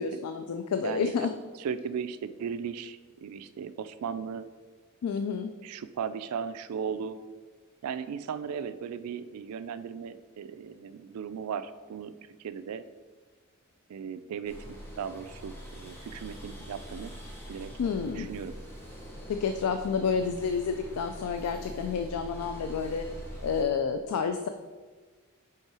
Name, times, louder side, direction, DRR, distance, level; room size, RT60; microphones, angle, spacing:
voice 1, 0.0-1.3 5.0-5.5 17.8-18.3 19.3-23.1 23.4-24.5, left 6 dB, 85° left, 8 dB, 0.3 m, -29 dB
voice 2, 0.8-1.3 1.6-4.5 5.6-7.2 7.8-12.1 12.4-12.8 13.9-17.1 17.5-17.7 18.0-18.5, right 7 dB, 80° right, 12 dB, 0.3 m, -37 dB
sound 1, 14.4-23.6, equal, 10° left, 1.0 m, -43 dB
5.4 x 3.7 x 4.7 m, 1.4 s
head